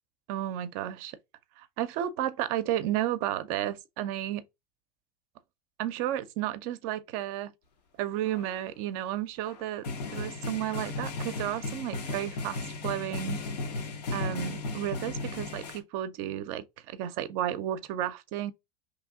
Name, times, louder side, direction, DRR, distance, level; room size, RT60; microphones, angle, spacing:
voice 1, 0.3-1.2 1.6-4.4 5.8-7.5 8.0-13.4 14.1-18.5, right 12 dB, 55° right, 0.5 m, -32 dB
sound 1, 8.3-8.5 9.4-15.8, left 3 dB, 75° left, 0.8 m, -35 dB
3.0 x 2.6 x 3.5 m
hypercardioid pair, 90°, 21 cm